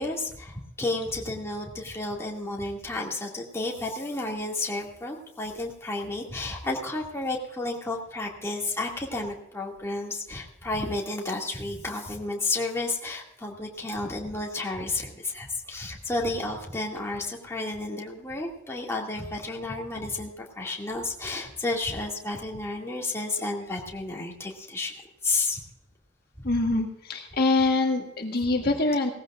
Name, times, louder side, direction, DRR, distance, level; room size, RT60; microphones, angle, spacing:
voice 1, 0.0-24.9 25.2-25.6 26.4-26.5, left 2 dB, 15° left, -2 dB, 2.2 m, -32 dB
voice 2, 26.4-29.1, left 2 dB, 55° left, 2 dB, 1.5 m, -24 dB
18.5 x 15.0 x 2.5 m, 0.79 s
head